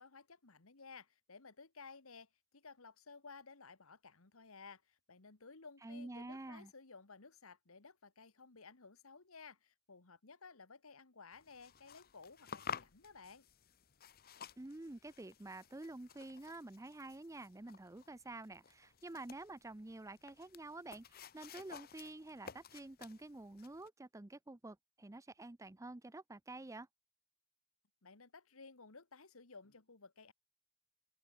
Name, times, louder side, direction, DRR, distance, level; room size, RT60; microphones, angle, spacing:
voice 1, 0.0-13.4 28.0-30.3, left 4 dB, 80° left, 1.7 m, -56 dB
voice 2, 5.8-6.7 14.6-26.9, right 2 dB, 15° right, 0.6 m, -49 dB
sound 1, 11.3-23.9, left 7 dB, 45° left, 0.9 m, -53 dB
open air
head